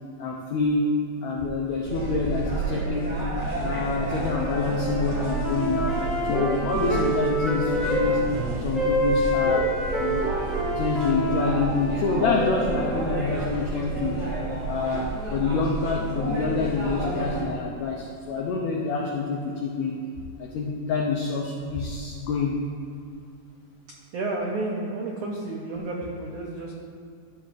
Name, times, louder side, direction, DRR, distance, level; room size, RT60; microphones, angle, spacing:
voice 1, 0.2-3.2 3.6-8.3 8.6-9.7 10.0-10.3 10.7-14.2 14.6-20.0 20.4-22.6, left 4 dB, 85° left, -1 dB, 1.5 m, -27 dB
sound 1, 1.8-17.4, right 2 dB, 25° right, 1.9 m, -30 dB
sound 2, 4.1-8.2 8.7-13.0, equal, ahead, 0.7 m, -27 dB
voice 2, 24.1-26.7, right 2 dB, 90° right, -2 dB, 1.4 m, -31 dB
12.5 x 7.2 x 2.5 m, 2.5 s
omnidirectional pair, 3.9 m